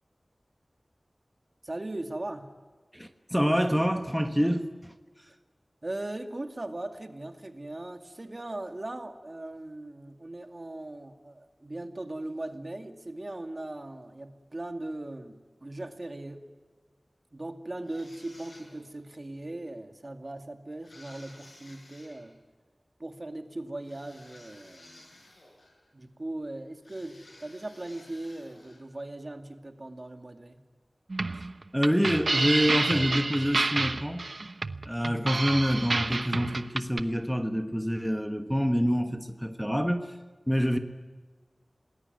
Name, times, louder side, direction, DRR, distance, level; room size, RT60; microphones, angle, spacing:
voice 1, 1.6-2.6 5.8-16.5 17.3-22.4 23.0-25.1 25.9-30.6, right 2 dB, 45° right, 6 dB, 2.3 m, -39 dB
voice 2, 2.9-5.3 31.7-34.2 34.8-40.2 40.5-40.8, equal, ahead, 6 dB, 1.4 m, -27 dB
sound 1, 17.8-19.0 20.8-22.2 23.8-25.9 26.8-28.9, left 1 dB, 70° left, 6.2 m, -54 dB
sound 2, 31.1-37.0, right 3 dB, 65° right, 0.9 m, -29 dB
27.5 x 20.0 x 9.6 m, 1.4 s
wide cardioid pair, 55°, 0 cm